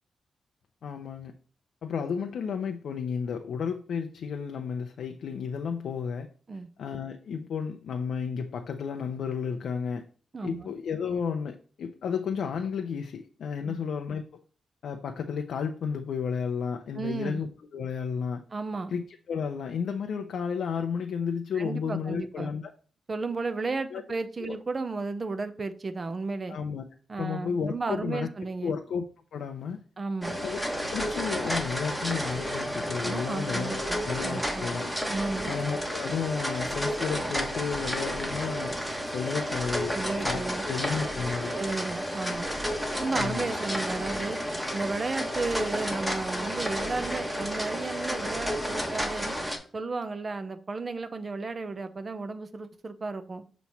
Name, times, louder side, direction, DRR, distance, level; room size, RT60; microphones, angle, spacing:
voice 1, 0.8-1.3 1.8-6.3 6.8-10.0 10.4-14.4 14.8-18.4 18.9-19.0 19.3-22.7 23.9-24.0 24.4-24.6 26.5-26.8 27.1-28.3 28.6-29.0 29.3-29.8 30.4-30.6 30.9-34.9 35.5-38.7 39.1-41.6 43.1-43.4, left 6 dB, 80° left, 0.6 m, -32 dB
voice 2, 10.3-10.7 13.6-13.8 16.9-17.4 18.5-18.9 21.6-22.5 23.1-26.6 27.1-28.7 30.0-30.4 33.0-34.7 35.1-35.5 39.9-40.7 41.5-42.5 43.0-44.4 44.7-49.3 49.7-53.4, right 3 dB, 35° right, 0.7 m, -33 dB
sound 1, 30.2-49.6, equal, 5° right, 1.2 m, -31 dB
7.0 x 3.1 x 5.6 m
cardioid pair, 95°, 0 cm